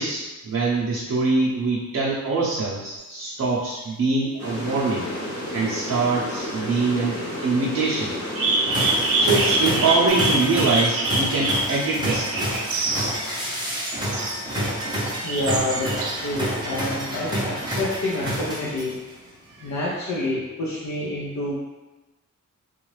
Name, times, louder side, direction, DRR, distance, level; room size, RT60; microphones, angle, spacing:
voice 1, 0.0-5.1 5.5-8.1 9.2-12.5 19.6-19.7, right 3 dB, 50° right, -7 dB, 0.6 m, -24 dB
sound 1, 3.0-3.1 8.3-13.2 13.9-14.3 15.1-16.2 16.9-17.0, right 2 dB, 85° right, 0.6 m, -25 dB
sound 2, 4.4-10.1, left 1 dB, 85° left, 1.4 m, -31 dB
sound 3, 8.7-19.1, equal, 15° right, 0.7 m, -28 dB
voice 2, 15.2-19.0 19.6-21.5, left 1 dB, 55° left, -6 dB, 0.6 m, -28 dB
4.0 x 2.4 x 3.1 m, 1.1 s
wide cardioid pair, 170°, 33 cm